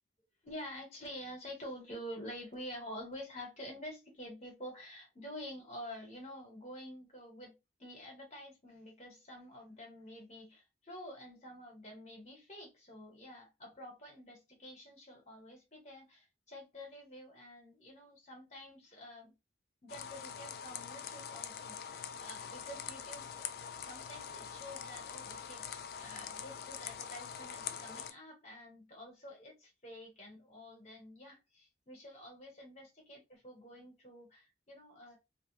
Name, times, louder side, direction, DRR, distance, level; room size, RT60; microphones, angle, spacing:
voice 1, 0.4-19.3 19.8-25.7 26.0-35.2, equal, 40° left, 1.0 m, -49 dB
sound 1, 19.9-28.1, left 8 dB, 55° left, 0.3 m, -44 dB
2.5 x 2.2 x 3.1 m
head